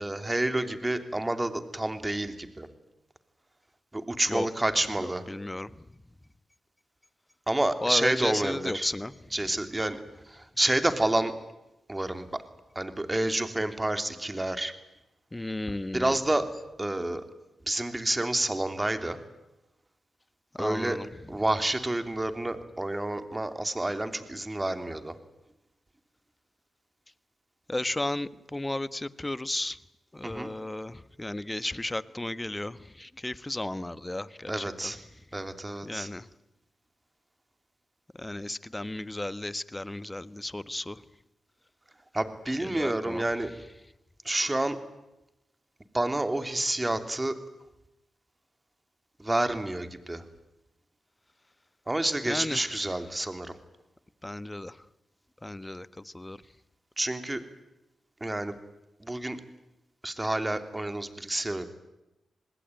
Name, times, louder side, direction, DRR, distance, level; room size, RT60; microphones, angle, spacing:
voice 1, 0.0-2.7 3.9-5.2 7.5-8.9 9.3-10.0 10.3-11.3 11.9-12.4 12.7-14.7 15.9-16.5 16.8-17.2 17.7-19.2 20.6-21.0 21.3-25.2 30.2-30.5 34.5-35.0 35.3-36.1 42.1-43.5 44.2-44.8 45.9-47.3 49.2-50.2 51.9-53.5 57.0-57.4 58.2-58.6 59.0-59.4 60.0-61.6, right 1 dB, 20° right, 8 dB, 3.2 m, -29 dB
voice 2, 5.3-5.7 7.8-9.1 15.3-16.1 20.6-21.0 27.7-29.7 30.2-30.9 31.2-32.7 33.0-34.5 35.8-36.2 38.2-40.9 42.7-43.2 52.3-52.6 54.2-54.7 55.4-55.9 56.1-56.4, left 1 dB, 20° left, 15 dB, 1.3 m, -33 dB
26.5 x 20.0 x 9.3 m, 0.93 s
supercardioid pair, 45°, 0 cm